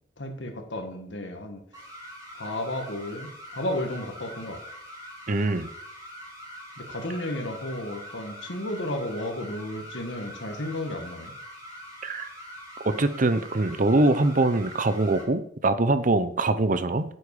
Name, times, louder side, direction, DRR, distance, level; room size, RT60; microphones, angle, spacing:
voice 1, 0.2-1.6 2.3-4.6 6.8-11.3, left 1 dB, 70° left, 5 dB, 1.9 m, -33 dB
sound 1, 1.7-15.2, equal, 20° right, 4.5 m, -43 dB
voice 2, 5.3-5.7 12.0-12.3 12.8-17.0, right 2 dB, 45° right, 12 dB, 0.7 m, -23 dB
9.7 x 8.5 x 5.0 m, 0.67 s
head